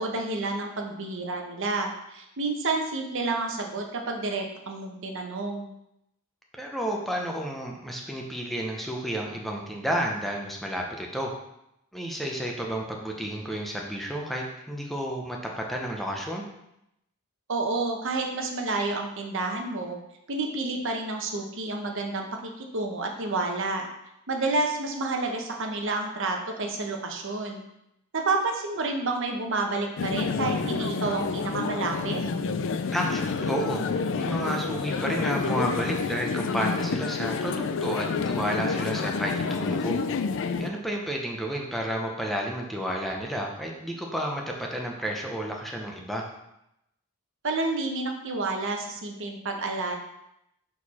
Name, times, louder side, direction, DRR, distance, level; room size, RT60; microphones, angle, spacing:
voice 1, 0.0-5.7 17.5-20.0 20.3-23.9 24.3-27.6 28.1-32.2 47.4-49.9, right 3 dB, 60° right, 3 dB, 0.9 m, -29 dB
voice 2, 6.5-11.3 11.9-16.5 32.9-40.0 40.6-46.2, equal, ahead, -1 dB, 0.7 m, -31 dB
sound 1, 30.0-40.7, left 5 dB, 60° left, 0.4 m, -29 dB
6.6 x 4.6 x 4.2 m, 0.84 s
head